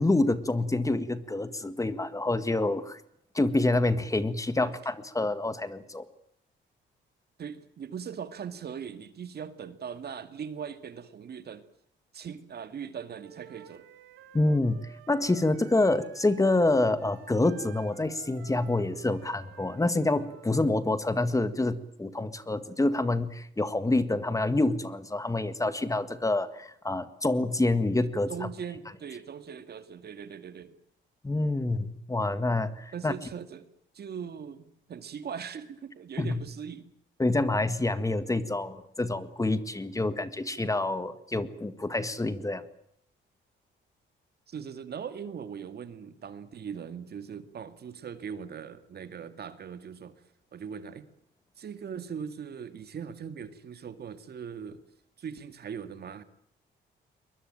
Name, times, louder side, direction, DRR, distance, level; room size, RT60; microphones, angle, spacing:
voice 1, 0.0-3.0 3.3-6.0 14.3-28.5 31.2-33.1 36.2-36.4 37.2-42.7, left 2 dB, 15° left, 12 dB, 1.8 m, -27 dB
voice 2, 7.4-11.6 12.1-13.9 28.3-30.8 32.9-33.7 33.9-36.9 44.5-50.2 50.5-51.1 51.6-54.8 55.2-56.2, right 7 dB, 55° right, 11 dB, 2.2 m, -40 dB
Wind instrument woodwind instrument, 13.2-20.7, right 11 dB, 85° right, 2.6 m, -53 dB
22.5 x 21.5 x 9.0 m, 0.71 s
cardioid pair, 90°, 20 cm